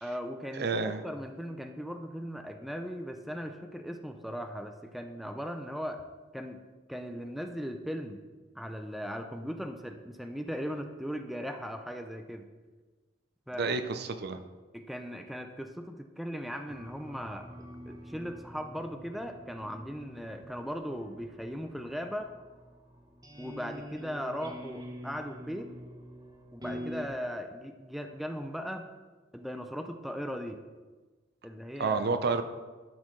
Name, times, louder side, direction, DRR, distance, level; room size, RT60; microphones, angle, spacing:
voice 1, 0.0-6.0 6.3-6.6 6.9-8.2 8.5-12.5 13.5-13.8 14.7-17.5 17.9-22.3 23.4-25.7 26.5-28.9 29.3-30.6 31.4-32.4, equal, ahead, 5 dB, 0.5 m, -38 dB
voice 2, 0.6-1.0 13.6-14.4 31.8-32.4, right 4 dB, 60° right, 9 dB, 0.6 m, -29 dB
sound 1, 16.7-27.1, equal, 20° right, 0.9 m, -46 dB
12.0 x 6.3 x 3.2 m, 1.3 s
head